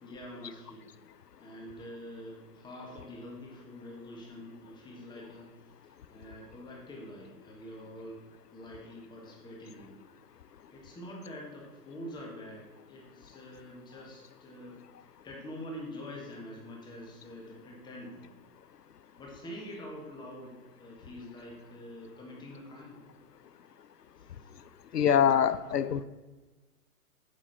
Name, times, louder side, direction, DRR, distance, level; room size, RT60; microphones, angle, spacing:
voice 1, 0.0-0.9 1.4-8.3 8.5-10.0 10.7-14.8 15.2-18.3 19.2-23.1 24.2-24.5 24.9-25.0, left 1 dB, 10° left, -1 dB, 1.6 m, -46 dB
voice 2, 24.9-26.0, left 8 dB, 90° left, 14 dB, 0.6 m, -24 dB
8.4 x 7.8 x 4.1 m, 1.2 s
figure-of-eight pair, 130°, 46 cm